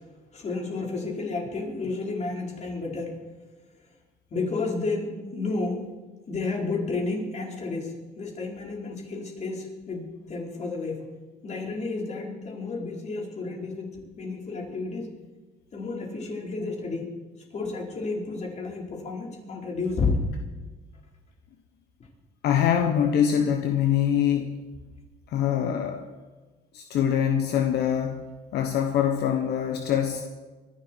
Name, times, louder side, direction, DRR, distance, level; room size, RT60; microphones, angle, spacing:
voice 1, 0.3-3.2 4.3-5.9 6.3-11.0 11.4-15.1 15.7-17.1 17.5-20.2, left 3 dB, 40° left, -1 dB, 4.6 m, -31 dB
voice 2, 22.4-24.6 25.3-26.0 26.7-28.3 28.5-30.2, left 9 dB, 75° left, 5 dB, 1.2 m, -24 dB
24.0 x 11.5 x 4.6 m, 1.3 s
cardioid pair, 110°, 17 cm